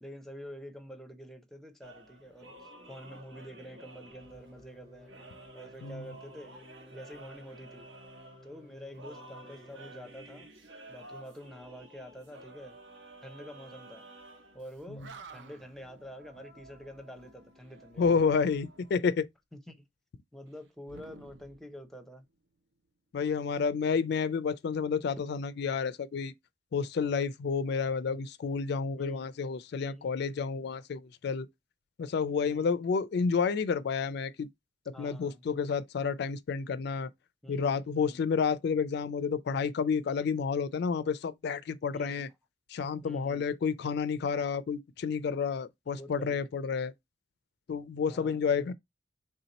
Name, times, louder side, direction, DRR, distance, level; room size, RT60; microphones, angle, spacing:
voice 1, 0.0-6.5 6.9-7.9 8.4-10.5 10.9-12.8 13.2-14.0 14.5-18.1 19.7-19.8 20.3-22.2 29.0-29.3 29.8-30.1 32.3-32.7 34.9-35.4 37.4-38.2 40.2-40.3 41.9-42.2 43.0-43.5 45.9-46.5 48.1-48.6, equal, ahead, 0.6 m, -48 dB
sound 1, 1.8-18.9, right 1 dB, 85° right, 1.4 m, -52 dB
sound 2, 4.1-10.4, equal, 20° right, 1.0 m, -56 dB
Animal, 14.7-14.8 15.0-15.8 18.0-18.8 20.8-22.2, right 3 dB, 65° right, 0.5 m, -50 dB
voice 2, 18.0-19.3 23.1-26.3 26.7-31.5 32.0-34.5 34.9-37.1 37.5-42.3 42.7-46.9 47.7-48.7, left 5 dB, 60° left, 0.3 m, -30 dB
3.5 x 2.8 x 3.9 m
head